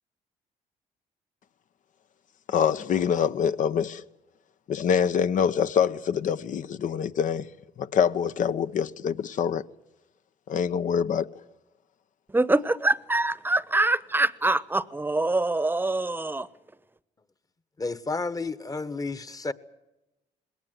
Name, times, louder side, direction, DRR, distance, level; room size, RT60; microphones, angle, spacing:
voice 1, 2.5-4.0 4.7-7.5 7.8-9.6 10.5-11.3, left 7 dB, 60° left, 0.9 m, -25 dB
voice 2, 12.3-16.5, right 2 dB, 15° right, 1.0 m, -24 dB
voice 3, 17.8-19.5, left 3 dB, 25° left, 1.2 m, -31 dB
21.0 x 18.0 x 9.4 m
supercardioid pair, 70°, 15 cm